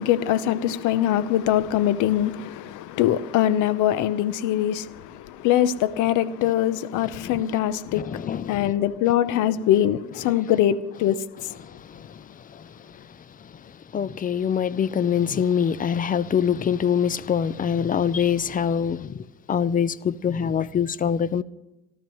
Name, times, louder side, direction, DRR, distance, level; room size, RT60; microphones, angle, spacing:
voice 1, 0.0-8.2 8.5-11.5, left 11 dB, 70° left, 0.9 m, -23 dB
voice 2, 7.0-7.4 7.9-8.7 11.6-21.4, left 8 dB, 25° left, 0.5 m, -25 dB
26.5 x 13.0 x 3.1 m
cardioid pair, 110°, 31 cm